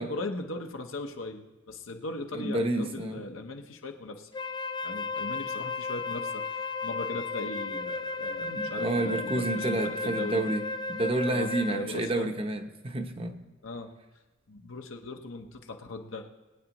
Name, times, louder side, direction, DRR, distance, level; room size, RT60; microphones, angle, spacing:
voice 1, 0.0-4.3 4.8-10.4 11.3-12.3 13.6-13.9 14.5-16.3, left 2 dB, 85° left, 4 dB, 1.1 m, -38 dB
voice 2, 2.3-3.2 8.4-10.6 10.9-13.4, right 2 dB, 30° right, 6 dB, 0.8 m, -30 dB
Wind instrument woodwind instrument, 4.3-12.0, left 3 dB, 20° left, 0.3 m, -34 dB
21.0 x 9.0 x 3.0 m, 1.2 s
head